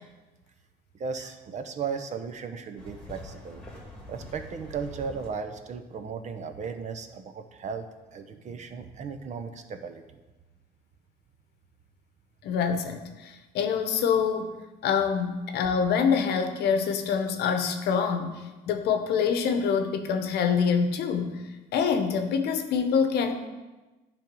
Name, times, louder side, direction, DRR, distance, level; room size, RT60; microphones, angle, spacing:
voice 1, 0.9-3.6 4.1-10.0, right 5 dB, 45° right, 7 dB, 0.7 m, -36 dB
sound 1, 2.8-5.3, left 1 dB, 5° left, 2.0 m, -44 dB
voice 2, 12.4-14.5 14.8-21.4 21.7-23.5, left 6 dB, 75° left, 7 dB, 0.8 m, -26 dB
10.5 x 3.6 x 5.3 m, 1.2 s
cardioid pair, 110°, 17 cm